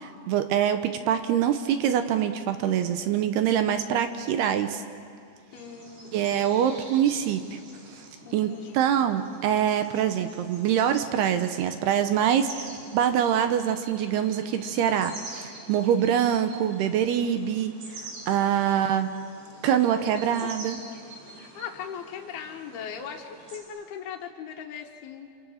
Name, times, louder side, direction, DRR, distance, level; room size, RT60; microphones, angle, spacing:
voice 1, 0.0-4.8 6.1-7.4 7.9-8.0 8.3-17.7 18.3-19.1 19.6-20.8, right 9 dB, 75° right, 8 dB, 2.6 m, -24 dB
voice 2, 5.5-6.2 8.3-8.8 18.7-18.9 19.9-20.3 20.6-21.0 21.3-25.3, left 7 dB, 65° left, -1 dB, 3.0 m, -40 dB
sound 1, 5.5-23.6, right 2 dB, 45° right, 6.2 m, -46 dB
27.5 x 27.0 x 6.5 m, 2.4 s
omnidirectional pair, 5.3 m